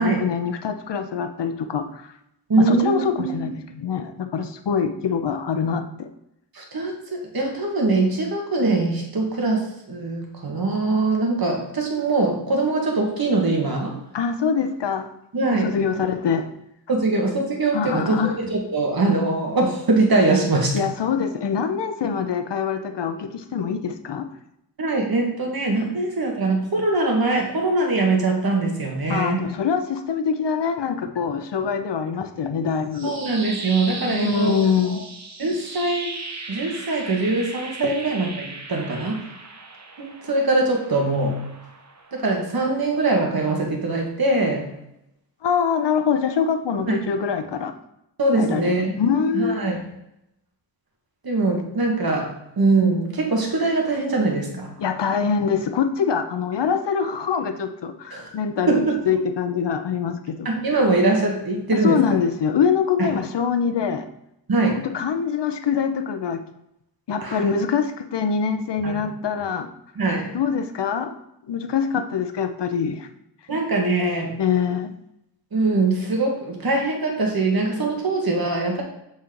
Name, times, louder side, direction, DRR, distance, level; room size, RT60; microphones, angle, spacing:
voice 1, 0.0-2.1 2.6-6.1 14.1-15.1 15.5-16.5 17.7-18.4 20.7-24.3 29.1-33.1 34.0-35.0 45.4-47.7 48.3-49.7 54.8-60.5 61.7-64.1 64.7-66.4 67.1-69.7 70.3-71.2 71.5-73.1 74.4-74.9, left 6 dB, 70° left, 8 dB, 0.7 m, -24 dB
voice 2, 2.5-3.4 6.5-14.0 15.3-15.8 16.9-20.7 24.8-29.5 33.0-34.6 35.4-36.1 36.5-39.2 40.0-41.4 42.1-44.6 46.9-47.1 48.2-49.0 49.3-49.8 51.2-54.7 58.1-58.3 58.7-59.0 60.5-62.0 63.0-63.1 64.5-64.8 67.2-67.4 68.8-69.0 70.0-70.3 73.5-74.4 75.5-78.8, right 2 dB, 55° right, 1 dB, 1.6 m, -22 dB
sound 1, 32.7-42.8, right 3 dB, 40° right, 0.8 m, -38 dB
7.4 x 4.2 x 3.8 m, 0.82 s
wide cardioid pair, 80°, 44 cm